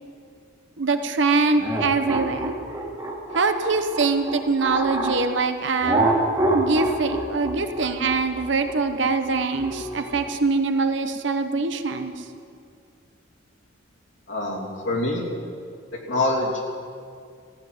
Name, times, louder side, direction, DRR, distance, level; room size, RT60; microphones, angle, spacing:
voice 1, 0.8-2.5 3.3-6.0 6.5-12.1, right 4 dB, 65° right, 7 dB, 0.9 m, -23 dB
sound 1, 1.6-5.2 5.8-10.3, right 2 dB, 20° right, 1.8 m, -26 dB
voice 2, 14.3-15.2 16.1-16.6, left 2 dB, 70° left, -3 dB, 2.9 m, -25 dB
14.5 x 7.7 x 9.2 m, 2.3 s
head